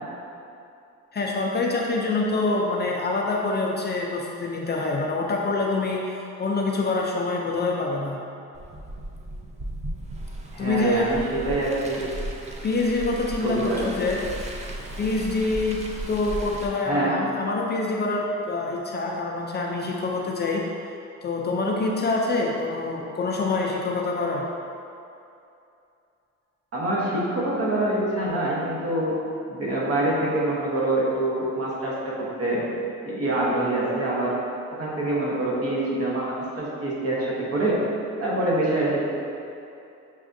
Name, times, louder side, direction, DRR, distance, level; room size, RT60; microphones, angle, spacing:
voice 1, 1.1-8.2 10.6-11.1 12.6-14.2 15.0-20.6 21.2-24.4, left 3 dB, 35° left, -1 dB, 0.4 m, -26 dB
Car, 8.5-16.7, right 1 dB, 25° right, 0.5 m, -36 dB
voice 2, 10.5-12.1 13.4-14.1 16.8-17.2 26.7-29.2 29.5-32.7 33.0-34.3 34.8-37.8 38.2-39.0, right 1 dB, 50° right, -5 dB, 1.1 m, -25 dB
5.9 x 2.4 x 2.6 m, 2.6 s
cardioid pair, 90°, 30 cm